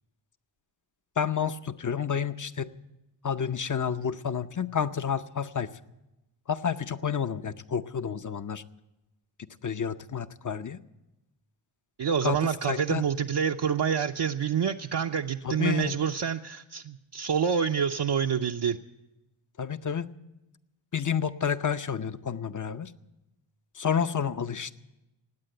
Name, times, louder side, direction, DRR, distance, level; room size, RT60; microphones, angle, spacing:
voice 1, 1.2-2.7 3.2-5.7 6.5-8.6 9.6-10.8 12.2-12.4 12.7-13.0 15.4-15.9 19.6-20.1 20.9-22.9 23.7-24.7, left 7 dB, 40° left, 12 dB, 0.7 m, -30 dB
voice 2, 12.0-18.8, right 7 dB, 55° right, 2 dB, 0.6 m, -27 dB
18.5 x 8.7 x 7.7 m, 0.98 s
cardioid pair, 50°, 48 cm